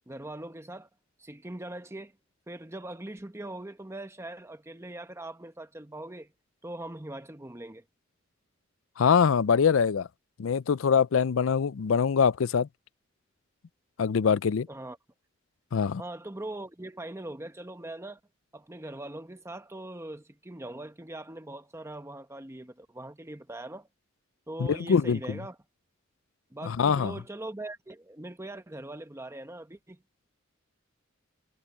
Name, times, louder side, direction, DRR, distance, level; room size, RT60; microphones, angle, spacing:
voice 1, 0.1-0.9 1.2-2.1 2.5-6.3 6.6-7.8 14.7-15.0 16.0-18.2 18.5-23.9 24.5-25.6 26.5-30.0, right 1 dB, 15° right, 1.1 m, -41 dB
voice 2, 9.0-10.1 10.4-12.7 14.0-14.7 15.7-16.0 24.6-25.4 26.6-27.1, left 6 dB, 80° left, 0.4 m, -24 dB
head